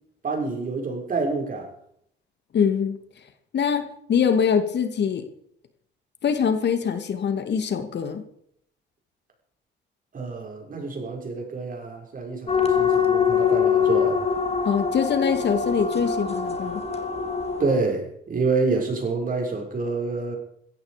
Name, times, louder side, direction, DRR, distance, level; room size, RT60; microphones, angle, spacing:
voice 1, 0.2-1.7 10.1-14.2 17.6-20.4, right 3 dB, 45° right, 6.4 m, -27 dB
voice 2, 2.5-3.0 3.5-5.3 6.2-8.2 14.6-16.8, left 7 dB, 60° left, 2.5 m, -23 dB
sound 1, 12.5-17.7, left 6 dB, 30° left, 3.2 m, -23 dB
16.0 x 14.5 x 5.3 m
cardioid pair, 90°, 20 cm